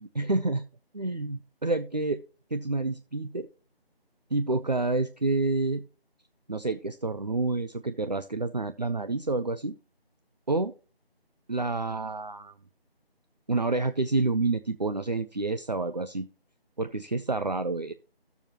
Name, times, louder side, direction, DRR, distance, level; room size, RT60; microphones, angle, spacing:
voice 1, 0.1-0.6 1.0-2.2 2.5-3.5 4.3-5.8 6.5-9.7 10.5-10.7 11.5-12.5 13.5-16.3 16.8-17.9, right 3 dB, 45° right, 10 dB, 0.6 m, -28 dB
15.5 x 7.1 x 2.9 m, 0.35 s
figure-of-eight pair, 165°, 31 cm